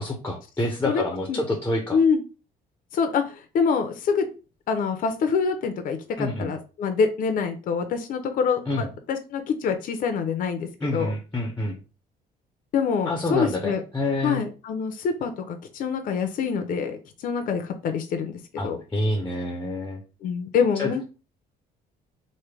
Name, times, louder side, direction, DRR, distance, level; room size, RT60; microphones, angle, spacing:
voice 1, 0.0-2.0 6.2-6.5 8.7-8.9 10.8-11.8 13.1-14.4 18.6-20.0 20.8-20.9, left 1 dB, 10° left, 2 dB, 0.6 m, -27 dB
voice 2, 2.9-3.2 3.5-4.3 4.7-11.1 12.7-13.8 14.2-17.0 17.2-18.8 20.2-21.1, left 6 dB, 55° left, 6 dB, 0.6 m, -25 dB
3.1 x 2.1 x 3.3 m, 0.33 s
cardioid pair, 110°, 17 cm